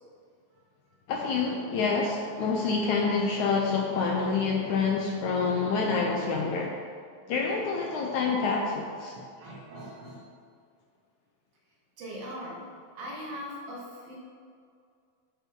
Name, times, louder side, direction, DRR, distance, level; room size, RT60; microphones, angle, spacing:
voice 1, 1.1-6.8 7.3-9.1, left 4 dB, 75° left, 0 dB, 1.9 m, -27 dB
voice 2, 9.1-10.3 12.0-12.6 13.0-14.2, equal, 80° right, -4 dB, 4.0 m, -40 dB
9.4 x 9.1 x 3.8 m, 2.2 s
omnidirectional pair, 4.1 m